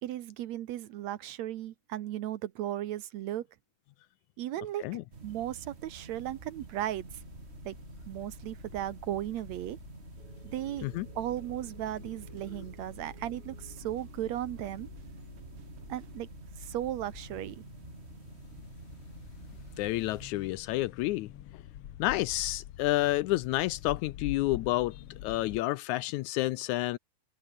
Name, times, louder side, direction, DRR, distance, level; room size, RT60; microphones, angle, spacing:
voice 1, 0.0-3.5 4.4-7.2 7.7-7.8 8.1-9.8 10.4-10.9 11.2-14.9 15.9-16.3 16.6-17.6, right 12 dB, 70° right, 2.0 m, -36 dB
sound 1, 5.1-20.3, right 4 dB, 25° right, 1.5 m, -49 dB
sound 2, 6.9-25.6, left 12 dB, 60° left, 1.6 m, -48 dB
sound 3, 10.2-16.2, right 6 dB, 45° right, 3.6 m, -57 dB
voice 2, 19.8-21.3 22.0-27.0, left 17 dB, 80° left, 1.8 m, -30 dB
open air
omnidirectional pair, 3.6 m